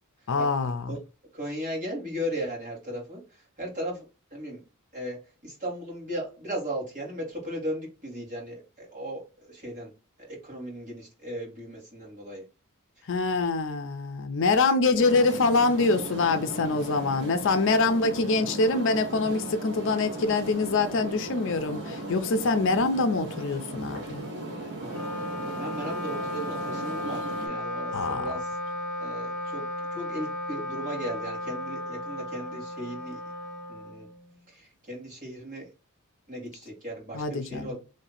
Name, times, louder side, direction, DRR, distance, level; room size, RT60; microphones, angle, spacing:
voice 1, 0.3-0.9 13.1-24.3 27.9-28.3 37.1-37.7, left 3 dB, 60° left, 0.5 m, -25 dB
voice 2, 1.3-4.6 4.9-9.9 10.2-12.4 13.0-13.1 24.8-28.6 29.0-29.6 29.9-33.2 33.7-34.1 34.5-35.7 36.3-37.8, equal, 35° right, 2.0 m, -37 dB
sound 1, 15.0-27.5, right 1 dB, 55° right, 1.4 m, -37 dB
Wind instrument woodwind instrument, 24.8-34.4, left 1 dB, 5° left, 0.8 m, -35 dB
3.2 x 2.8 x 4.1 m
head